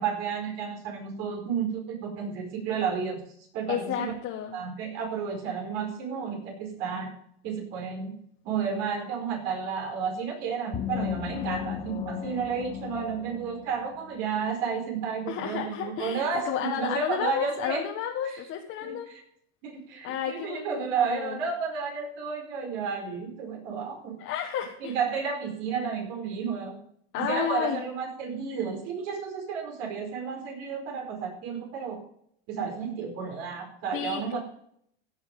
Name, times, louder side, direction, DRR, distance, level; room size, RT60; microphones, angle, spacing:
voice 1, 0.0-3.2 3.5-4.1 4.5-7.1 7.4-8.2 8.4-17.8 18.2-18.3 18.8-19.2 19.6-24.2 24.8-26.8 27.2-32.0 32.5-34.4, right 6 dB, 60° right, 1 dB, 4.7 m, -32 dB
voice 2, 3.7-4.5 15.3-19.1 20.0-21.4 24.2-24.9 27.1-27.8 33.9-34.4, left 9 dB, 45° left, 1 dB, 1.6 m, -32 dB
sound 1, 10.7-14.3, left 13 dB, 20° left, 0.4 m, -36 dB
16.0 x 6.3 x 5.4 m, 0.68 s
supercardioid pair, 135°, 31 cm